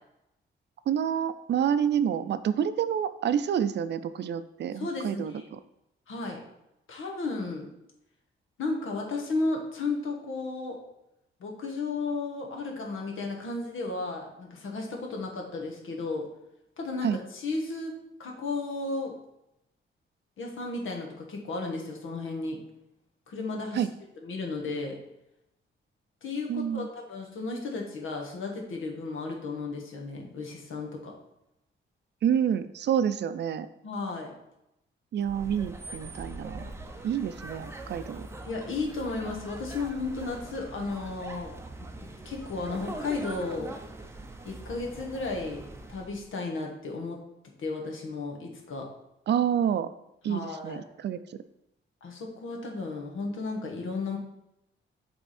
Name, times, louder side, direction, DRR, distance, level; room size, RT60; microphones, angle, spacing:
voice 1, 0.9-5.6 17.0-17.2 23.7-23.9 26.5-26.9 32.2-33.7 35.1-36.7 37.0-38.3 49.3-49.9 50.2-51.2, right 9 dB, 60° right, 13 dB, 0.4 m, -28 dB
voice 2, 4.7-5.4 6.1-6.4 6.9-7.7 8.6-10.8 11.4-16.3 16.8-17.9 18.2-19.1 20.4-22.6 23.3-23.9 24.2-25.0 26.2-31.1 33.8-34.3 38.5-41.5 42.2-43.7 44.4-45.6 45.9-47.2 47.6-48.9 50.2-50.8 52.0-54.2, left 3 dB, 75° left, 1 dB, 1.4 m, -34 dB
sound 1, 35.2-46.3, right 2 dB, 10° right, 0.6 m, -42 dB
8.0 x 3.5 x 4.2 m, 0.86 s
wide cardioid pair, 140°, 21 cm